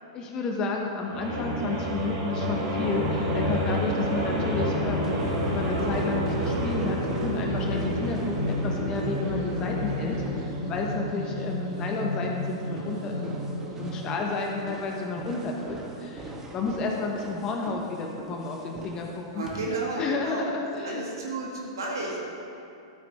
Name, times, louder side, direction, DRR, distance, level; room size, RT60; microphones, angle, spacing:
voice 1, 0.1-13.3 13.8-19.5 20.0-21.0, left 3 dB, 30° left, 1 dB, 1.1 m, -31 dB
sound 1, 1.1-14.3, equal, 45° right, 2.6 m, -29 dB
sound 2, 4.9-19.8, right 1 dB, 20° right, 1.3 m, -42 dB
voice 2, 19.3-20.6 20.8-22.2, right 2 dB, 70° right, -2 dB, 1.8 m, -32 dB
12.5 x 9.3 x 3.6 m, 2.6 s
figure-of-eight pair, 100°, 2 cm